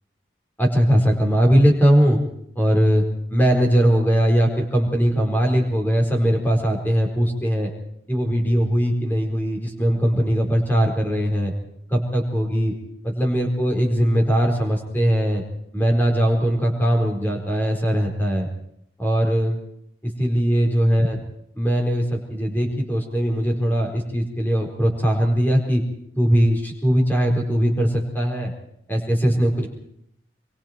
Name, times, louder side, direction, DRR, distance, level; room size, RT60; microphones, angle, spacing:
voice 1, 0.6-2.2 2.5-3.0 3.3-7.7 8.1-11.5 11.9-12.7 13.0-15.4 15.7-18.5 19.0-19.6 20.0-21.2 21.5-25.8 26.1-28.5 28.9-29.7, equal, 10° left, 2 dB, 4.5 m, -20 dB
25.5 x 23.0 x 4.5 m, 0.73 s
head